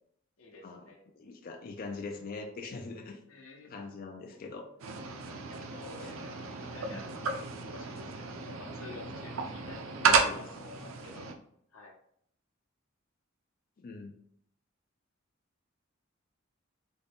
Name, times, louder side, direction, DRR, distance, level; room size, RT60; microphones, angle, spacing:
voice 1, 0.4-1.0 3.3-3.8 4.3-4.4 5.2-7.3 7.6-11.2 11.7-11.9, left 3 dB, 85° left, 0 dB, 0.9 m, -50 dB
voice 2, 1.2-3.2 3.7-4.7 6.9-7.0 10.0-10.5 10.8-10.9 13.8-14.1, left 3 dB, 45° left, 4 dB, 0.4 m, -42 dB
sound 1, 4.8-11.3, right 5 dB, 80° right, 0.5 m, -32 dB
3.8 x 2.2 x 3.5 m, 0.69 s
head